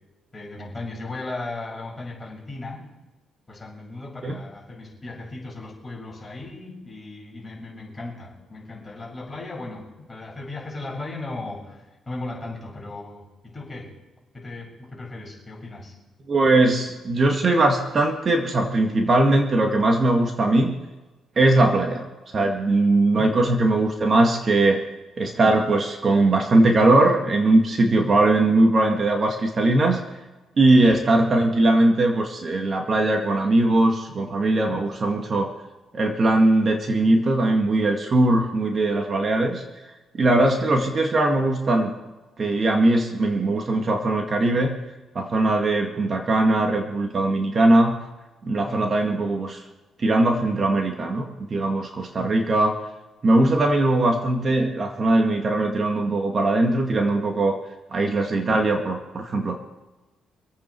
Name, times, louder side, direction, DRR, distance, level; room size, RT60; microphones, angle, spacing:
voice 1, 0.3-2.8 3.5-13.9 14.3-15.9 21.5-21.7 23.1-23.4 30.8-31.0 48.7-48.9 52.2-52.3, left 2 dB, 20° left, -2 dB, 6.0 m, -36 dB
voice 2, 16.3-20.7 21.4-22.0 22.3-24.8 25.2-30.0 30.6-35.5 35.9-39.6 40.1-41.9 42.4-44.8 45.2-47.9 48.4-49.6 50.0-52.8 53.2-57.6 57.9-59.6, right 2 dB, 40° right, 3 dB, 2.0 m, -20 dB
26.0 x 8.7 x 4.7 m, 1.1 s
cardioid pair, 90°, 0 cm